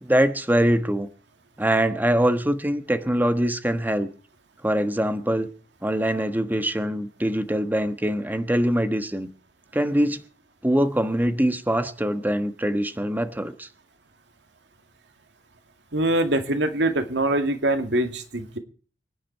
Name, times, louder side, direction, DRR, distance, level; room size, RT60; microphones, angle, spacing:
voice 1, 0.0-1.1 1.6-4.1 4.6-5.5 5.8-9.3 9.7-10.2 10.6-13.7, right 1 dB, 10° right, 1.2 m, -23 dB
voice 2, 15.9-18.6, right 1 dB, 90° right, 2.3 m, -23 dB
24.5 x 10.5 x 4.6 m
head